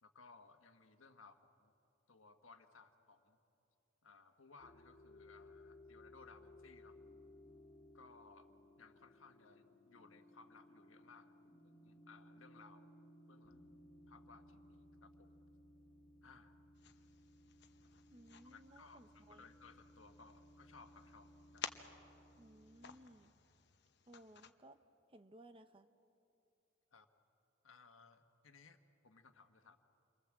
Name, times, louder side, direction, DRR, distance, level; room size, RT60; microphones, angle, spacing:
voice 1, 0.0-1.7 2.1-3.4 4.0-7.0 7.9-8.5 8.8-12.9 13.2-13.6 14.1-15.4 16.2-16.5 18.4-21.7 26.9-27.1 27.6-29.8, left 4 dB, 85° left, 7 dB, 1.5 m, -62 dB
sound 1, 4.6-23.0, left 1 dB, 35° left, 2.5 m, -62 dB
sound 2, 16.7-24.5, left 7 dB, 60° left, 1.0 m, -54 dB
voice 2, 18.1-19.4 22.4-23.3 24.1-24.8 25.1-25.9, right 1 dB, 25° right, 9 dB, 0.9 m, -60 dB
28.5 x 23.5 x 7.6 m, 2.7 s
head